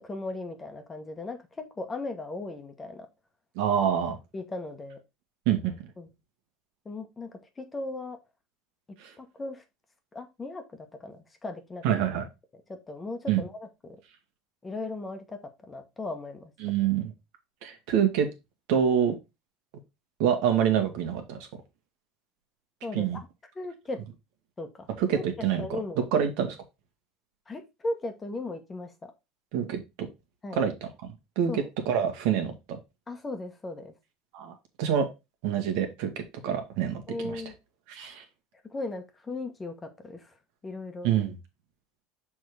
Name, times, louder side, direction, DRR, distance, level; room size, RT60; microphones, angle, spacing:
voice 1, 0.0-3.1 4.3-5.0 6.0-6.1 6.8-8.2 9.2-9.6 10.1-11.8 12.7-14.0 14.6-16.5 22.8-23.3 23.5-24.0 24.6-24.9 25.1-25.2 25.6-26.1 27.5-29.1 30.4-30.6 31.5-32.0 33.1-33.9 37.1-37.5 38.7-40.3 40.6-41.1, left 2 dB, 20° left, 6 dB, 1.2 m, -37 dB
voice 2, 3.6-4.2 5.5-5.7 9.0-9.1 11.8-12.3 13.3-13.4 16.6-17.1 17.6-18.3 18.7-19.2 20.2-21.4 22.9-23.2 25.0-25.7 26.0-26.6 29.5-29.8 30.5-30.9 31.4-32.8 34.3-35.1 35.4-36.1 36.4-37.4 37.9-38.2 41.0-41.4, right 8 dB, 70° right, 5 dB, 1.7 m, -26 dB
6.3 x 3.7 x 4.8 m, 0.25 s
supercardioid pair, 125°, 0 cm